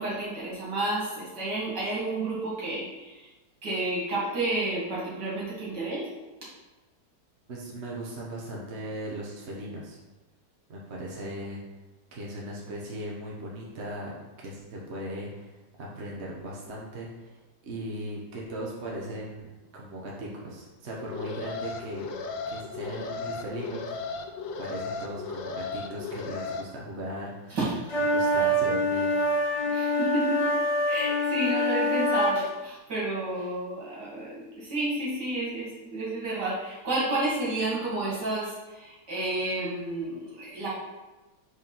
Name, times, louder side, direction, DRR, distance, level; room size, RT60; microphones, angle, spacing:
voice 1, 0.0-3.3 3.6-6.1 27.5-27.7 29.7-30.5 30.9-40.7, right 2 dB, 65° right, -6 dB, 3.0 m, -31 dB
voice 2, 7.5-10.0 10.7-11.6 12.1-17.4 17.6-19.5 19.7-22.1 22.5-23.8 24.6-27.6 28.1-29.2, right 1 dB, 40° right, -3 dB, 1.2 m, -38 dB
Alarm, 21.0-26.6, left 4 dB, 80° left, 1.4 m, -35 dB
sound 1, 27.9-32.4, equal, 45° left, 1.2 m, -25 dB
5.1 x 4.8 x 5.4 m, 1.1 s
omnidirectional pair, 2.0 m